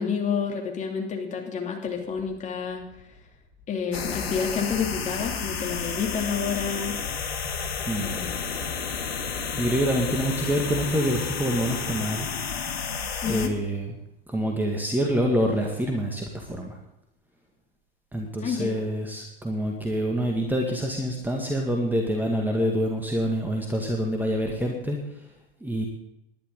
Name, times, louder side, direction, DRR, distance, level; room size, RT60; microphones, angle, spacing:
voice 1, 0.0-2.8 3.7-6.9 8.0-8.4 13.2-13.5 18.4-18.7, left 6 dB, 25° left, 1 dB, 3.0 m, -29 dB
sound 1, 3.9-13.5, left 6 dB, 75° left, 1.8 m, -31 dB
voice 2, 9.6-12.3 13.2-13.9 14.3-16.8 18.1-25.0 25.6-25.9, equal, 5° right, 1 dB, 2.0 m, -26 dB
19.5 x 11.5 x 3.9 m, 0.84 s
figure-of-eight pair, 90°, 31 cm